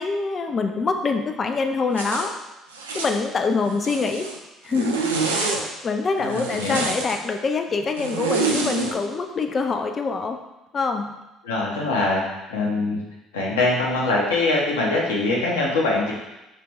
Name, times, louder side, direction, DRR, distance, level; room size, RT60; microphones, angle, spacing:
voice 1, 0.0-2.4 2.9-4.3 4.6-5.0 5.3-10.4 10.7-11.1, left 4 dB, 35° left, 5 dB, 0.5 m, -25 dB
Zipper (clothing), 1.9-2.3 2.7-3.2 3.7-4.4 4.7-5.6 6.3-7.2 8.0-9.0, right 4 dB, 80° right, 0.4 m, -27 dB
voice 2, 6.2-6.8 11.4-12.2 12.5-13.0 13.3-16.1, left 2 dB, 75° left, -3 dB, 0.9 m, -23 dB
4.7 x 3.4 x 3.0 m, 0.99 s
figure-of-eight pair, 55°, 0 cm